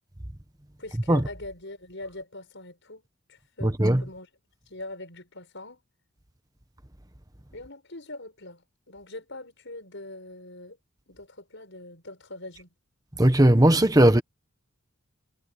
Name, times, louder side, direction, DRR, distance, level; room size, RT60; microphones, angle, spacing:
voice 1, 0.8-3.0 3.3-4.3 4.7-5.8 7.5-10.8 11.1-12.7, left 2 dB, 55° left, 7.7 m, -42 dB
voice 2, 3.6-4.0 13.2-14.2, right 1 dB, 15° right, 1.3 m, -18 dB
head